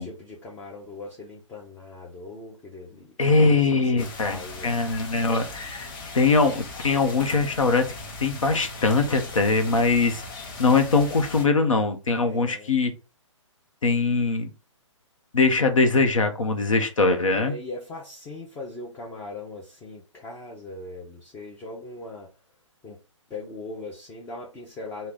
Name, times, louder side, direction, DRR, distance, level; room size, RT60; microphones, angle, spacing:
voice 1, 0.0-3.5 3.8-4.9 12.3-12.8 17.2-22.3 22.8-23.0 23.3-25.1, left 2 dB, 10° left, 0.4 m, -40 dB
voice 2, 3.2-5.9 6.1-7.9 8.2-10.2 10.6-12.9 13.8-14.5 15.3-17.5, left 3 dB, 90° left, 0.8 m, -22 dB
sound 1, 4.0-11.5, left 3 dB, 40° left, 0.9 m, -39 dB
3.2 x 2.2 x 3.8 m
hypercardioid pair, 140°, 16 cm